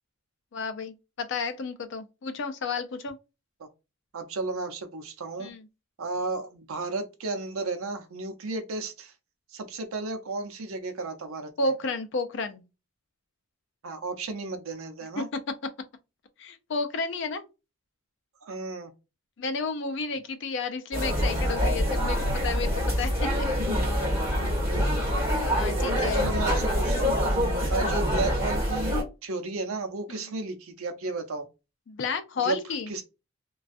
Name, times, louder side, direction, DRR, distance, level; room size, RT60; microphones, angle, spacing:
voice 1, 0.5-3.2 5.4-5.6 11.6-12.6 15.2-15.3 16.4-17.4 19.4-22.7 23.0-23.1 23.4-23.5 25.4-26.3 30.1-30.3 31.9-32.9, left 4 dB, 55° left, 0.4 m, -31 dB
voice 2, 4.1-5.5 6.0-9.1 9.5-11.7 13.8-15.3 18.4-18.9 25.8-28.9 29.2-31.5 32.4-32.6 32.9-33.0, right 3 dB, 80° right, 0.6 m, -33 dB
amb market-lively-belgrade, 20.9-29.0, equal, 15° right, 1.4 m, -25 dB
2.4 x 2.3 x 2.4 m
head